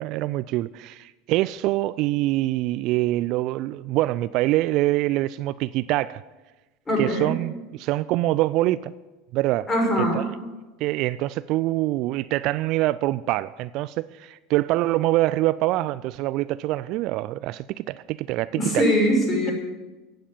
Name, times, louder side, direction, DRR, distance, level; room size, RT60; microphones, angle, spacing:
voice 1, 0.0-6.2 7.0-8.9 9.3-9.7 10.1-10.2 10.8-18.8, right 17 dB, 50° right, 0.3 m, -25 dB
voice 2, 6.9-7.3 9.7-10.4 18.6-19.5, equal, 20° left, 5.5 m, -22 dB
15.5 x 8.9 x 7.2 m
figure-of-eight pair, 75°, 0 cm